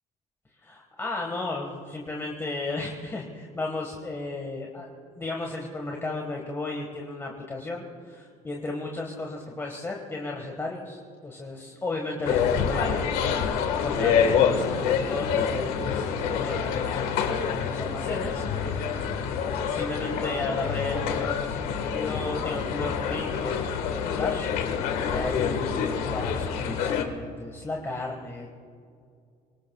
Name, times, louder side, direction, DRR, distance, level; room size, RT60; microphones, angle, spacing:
voice 1, 0.6-4.9 5.1-13.5 13.8-19.0 19.5-23.6 23.9-24.5 25.0-28.5, left 2 dB, 15° left, 0 dB, 1.6 m, -34 dB
sound 1, 12.2-27.0, left 7 dB, 90° left, 1.6 m, -27 dB
25.0 x 19.0 x 2.4 m, 2.3 s
cardioid pair, 135°, 15 cm